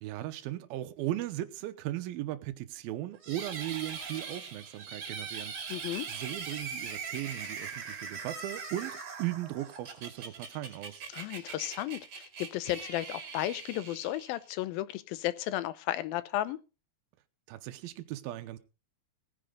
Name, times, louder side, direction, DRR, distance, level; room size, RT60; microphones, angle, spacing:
voice 1, 0.0-11.0 17.5-18.6, right 14 dB, 85° right, 2.7 m, -37 dB
sound 1, 3.2-14.5, right 5 dB, 45° right, 3.3 m, -41 dB
voice 2, 5.7-6.1 11.1-16.6, left 14 dB, 80° left, 2.6 m, -34 dB
18.0 x 10.0 x 3.9 m
omnidirectional pair, 4.3 m